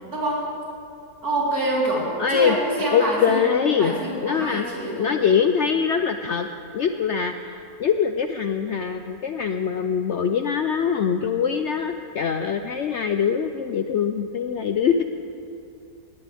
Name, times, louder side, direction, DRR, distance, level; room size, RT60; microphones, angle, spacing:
voice 1, 1.2-5.2, right 1 dB, 65° right, -6 dB, 4.4 m, -26 dB
voice 2, 2.2-2.6 2.9-3.9 4.2-4.7 5.0-6.5 6.7-15.0, left 7 dB, 65° left, 7 dB, 0.7 m, -23 dB
18.5 x 18.0 x 3.5 m, 2.6 s
omnidirectional pair, 1.7 m